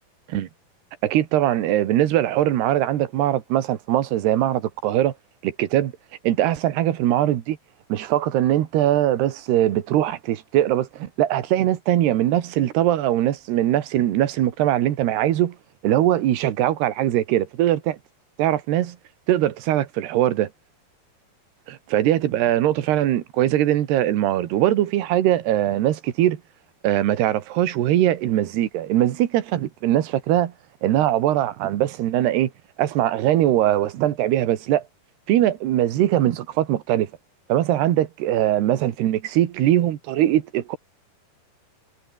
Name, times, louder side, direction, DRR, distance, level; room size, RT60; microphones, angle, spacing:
voice 1, 1.0-5.1 5.4-5.9 6.2-7.6 7.9-15.6 15.8-18.0 18.4-19.0 19.3-20.5 21.7-26.4 26.8-30.5 30.8-32.5 32.8-34.8 35.3-37.1 37.5-40.8, right 12 dB, 80° right, 3.7 m, -21 dB
omnidirectional pair, 4.6 m